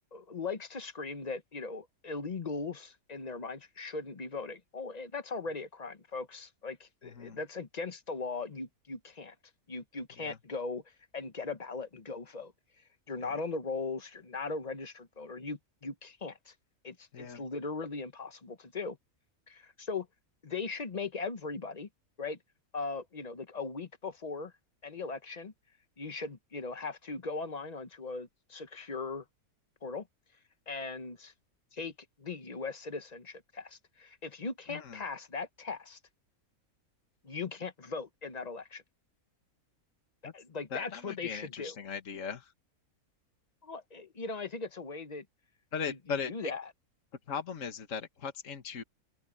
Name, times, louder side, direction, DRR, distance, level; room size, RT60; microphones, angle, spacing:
voice 1, 0.1-9.3 9.7-10.8 11.1-12.5 13.1-16.5 16.8-19.0 19.5-20.1 20.4-21.9 22.2-22.4 22.7-24.5 24.8-25.5 26.0-29.2 29.8-30.1 30.7-31.3 31.7-31.9 32.2-36.0 37.2-38.8 40.3-41.7 43.6-45.2 45.9-46.6, left 4 dB, 30° left, 1.0 m, -39 dB
voice 2, 7.0-7.4 10.2-10.4 13.2-13.4 17.1-17.4 34.7-35.0 40.2-40.3 40.7-42.5 45.7-46.5 47.3-48.8, left 6 dB, 60° left, 1.9 m, -38 dB
open air
omnidirectional pair, 1.6 m